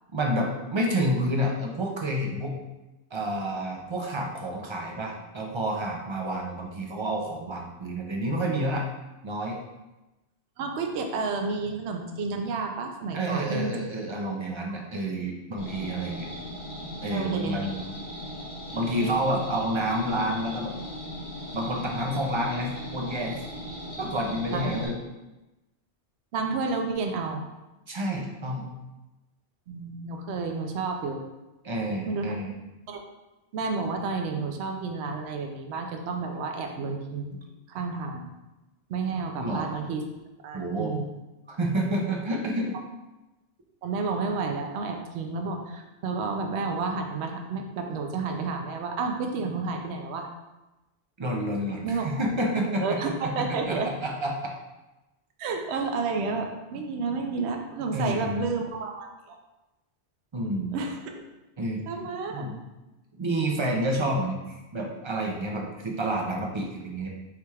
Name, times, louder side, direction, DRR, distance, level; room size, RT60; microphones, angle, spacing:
voice 1, 0.1-2.6 3.1-8.9 9.2-9.6 13.1-16.4 17.0-17.9 18.7-20.7 21.5-23.4 24.0-25.0 27.9-28.7 31.6-32.6 39.4-39.7 40.5-40.9 41.5-42.8 51.2-53.0 53.2-54.3 57.9-58.5 60.3-60.7 61.6-61.8 62.3-62.6 63.2-67.1, right 1 dB, 45° right, 0 dB, 0.3 m, -29 dB
voice 2, 10.6-13.8 17.1-17.7 19.0-19.1 24.5-24.7 26.3-27.5 29.7-31.2 32.1-32.3 32.9-33.0 33.5-37.4 37.7-38.3 38.9-40.0 40.4-41.1 43.8-50.3 51.8-52.3 52.8-54.0 55.4-59.4 60.7-61.2 61.9-62.4, right 4 dB, 70° right, 3 dB, 0.8 m, -31 dB
sound 1, 15.6-24.9, equal, 40° left, 1.1 m, -38 dB
5.7 x 3.2 x 2.3 m, 1.0 s
omnidirectional pair, 1.2 m